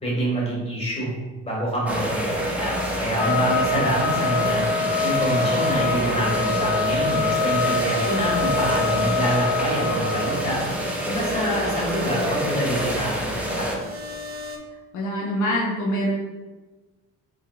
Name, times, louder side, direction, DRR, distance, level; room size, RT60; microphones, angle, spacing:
voice 1, 0.0-1.1 1.4-4.6 5.0-10.6 11.0-13.7, right 1 dB, 20° left, -4 dB, 1.4 m, -26 dB
sound 1, 1.9-13.8, right 1 dB, 5° right, 0.7 m, -27 dB
Trumpet, 3.1-10.5, left 4 dB, 60° left, 1.2 m, -25 dB
sound 2, 7.6-14.6, left 2 dB, 45° right, 0.5 m, -36 dB
voice 2, 14.9-16.1, equal, 75° left, -3 dB, 0.8 m, -24 dB
4.7 x 2.6 x 2.3 m, 1.2 s
cardioid pair, 90°, 30 cm